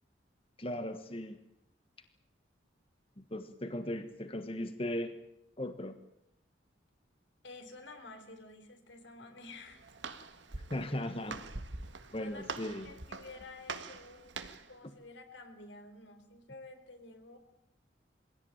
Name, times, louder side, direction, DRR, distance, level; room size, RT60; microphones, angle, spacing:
voice 1, 0.6-1.4 3.2-5.1 5.6-6.0 10.7-11.4 12.1-12.9, left 1 dB, 30° left, 8 dB, 1.4 m, -37 dB
voice 2, 7.4-9.8 12.2-17.4, left 2 dB, 75° left, 6 dB, 4.0 m, -51 dB
Walk footsteps, 9.4-14.8, right 3 dB, 75° right, 1.8 m, -44 dB
23.0 x 17.0 x 9.1 m, 0.81 s
head